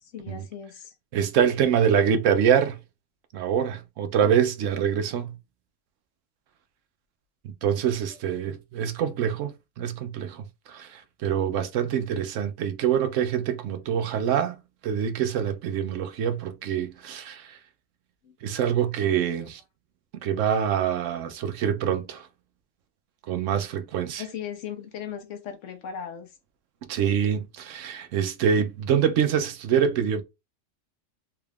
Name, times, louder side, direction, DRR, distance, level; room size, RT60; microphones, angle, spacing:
voice 1, 0.0-0.9 18.2-18.4 19.0-19.5 20.9-21.0 24.2-26.3, left 8 dB, 80° left, 1.2 m, -38 dB
voice 2, 1.1-2.8 3.3-5.4 7.4-14.6 14.8-17.6 18.4-19.6 20.2-22.3 23.3-24.2 26.9-30.2, right 8 dB, 85° right, 1.0 m, -25 dB
3.6 x 2.4 x 3.3 m
omnidirectional pair, 1.3 m